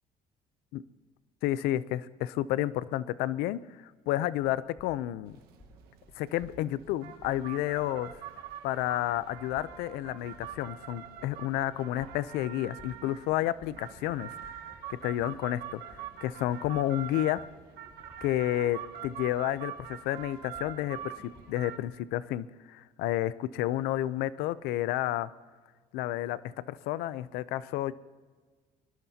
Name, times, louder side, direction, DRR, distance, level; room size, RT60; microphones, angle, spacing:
voice 1, 1.4-5.4 6.2-8.2 8.6-14.6 14.9-17.4 18.2-21.1 21.5-25.3 25.9-27.9, left 14 dB, 90° left, 17 dB, 0.6 m, -31 dB
sound 1, 4.7-21.9, left 1 dB, 25° left, 3.5 m, -58 dB
sound 2, 5.3-21.8, right 9 dB, 85° right, 1.4 m, -44 dB
23.5 x 21.0 x 2.8 m, 1.5 s
cardioid pair, 105°, 16 cm